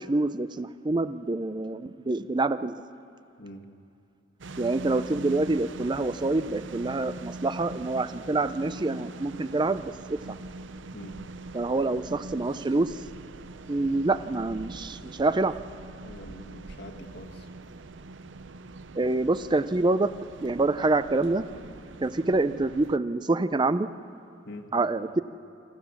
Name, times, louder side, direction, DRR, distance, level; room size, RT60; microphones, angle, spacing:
voice 1, 0.0-2.7 4.6-10.2 11.5-12.9 13.7-15.6 19.0-20.1 20.4-21.4 22.0-23.9 24.7-25.2, right 2 dB, 25° right, 13 dB, 0.5 m, -26 dB
sound 1, 4.4-23.0, right 2 dB, 70° right, 0.6 m, -42 dB
voice 2, 16.0-17.5 24.5-24.7, left 1 dB, 60° left, 3 dB, 1.8 m, -44 dB
26.5 x 14.5 x 7.2 m, 2.6 s
head